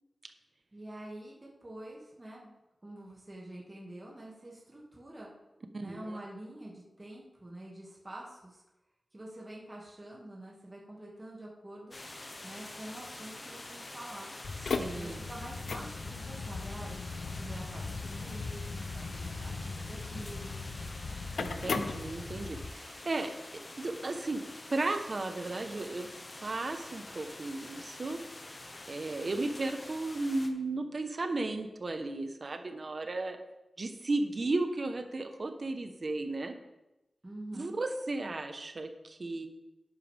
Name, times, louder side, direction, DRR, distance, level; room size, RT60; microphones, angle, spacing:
voice 1, 0.7-2.5 2.8-5.3 5.7-8.6 9.1-12.0 12.4-14.3 15.0-17.0 17.3-20.6 37.2-37.7, right 1 dB, 25° right, -4 dB, 2.2 m, -46 dB
voice 2, 5.7-6.2 14.8-15.2 21.4-23.3 23.8-24.4 24.7-26.1 26.4-28.2 28.9-33.4 33.8-36.5 37.5-39.5, right 2 dB, 45° right, 6 dB, 1.1 m, -34 dB
sound 1, 11.9-30.5, left 2 dB, 35° left, 1.1 m, -47 dB
sound 2, 14.4-22.7, left 4 dB, 80° left, 0.7 m, -38 dB
11.5 x 9.4 x 3.6 m, 0.98 s
wide cardioid pair, 110°, 0 cm